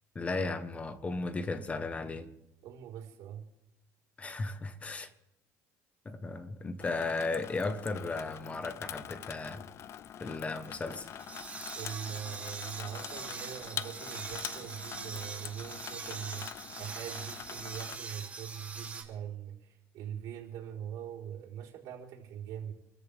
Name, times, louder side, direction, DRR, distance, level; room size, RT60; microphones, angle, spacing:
voice 1, 0.1-2.3 4.2-5.1 6.0-9.7 10.2-11.1, left 3 dB, 20° left, 1.3 m, -35 dB
voice 2, 2.6-3.5 11.7-22.7, right 9 dB, 70° right, 4.5 m, -42 dB
Water tap faucet / Sink (filling or washing), 6.8-18.0, left 10 dB, 45° left, 0.6 m, -45 dB
sound 1, 10.7-19.0, right 4 dB, 25° right, 3.2 m, -43 dB
28.5 x 14.0 x 3.6 m
cardioid pair, 125°, 6 cm